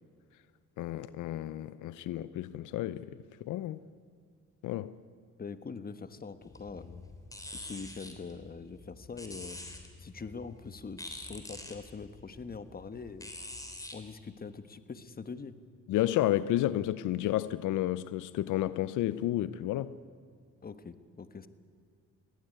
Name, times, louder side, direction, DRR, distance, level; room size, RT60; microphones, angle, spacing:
voice 1, 0.8-3.1 3.4-3.8 4.6-4.9 15.9-19.9, left 14 dB, 85° left, 0.7 m, -31 dB
voice 2, 5.4-7.0 7.5-9.6 10.0-13.3 13.9-15.5 20.6-21.5, left 5 dB, 30° left, 1.3 m, -43 dB
sound 1, 6.4-14.0, left 1 dB, 10° left, 3.5 m, -46 dB
21.5 x 16.5 x 9.6 m
cardioid pair, 90°, 30 cm